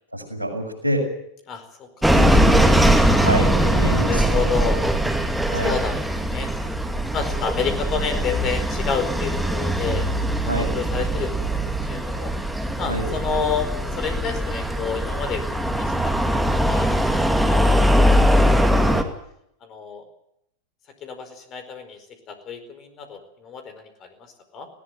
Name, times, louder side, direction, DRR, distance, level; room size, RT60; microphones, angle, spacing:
voice 1, 0.1-1.1 2.1-2.7 3.2-4.4 5.5-5.7 10.5-10.7 12.8-13.1, equal, 90° left, 4 dB, 6.2 m, -27 dB
voice 2, 1.5-2.1 2.4-2.5 3.0-4.8 5.6-6.5 7.1-12.3 12.8-18.2 18.6-19.0 19.6-20.0 21.0-24.7, left 6 dB, 30° left, 9 dB, 4.7 m, -30 dB
sound 1, 2.0-19.0, equal, 5° right, 2.4 m, -21 dB
20.0 x 18.0 x 9.4 m, 0.76 s
figure-of-eight pair, 90°, 0 cm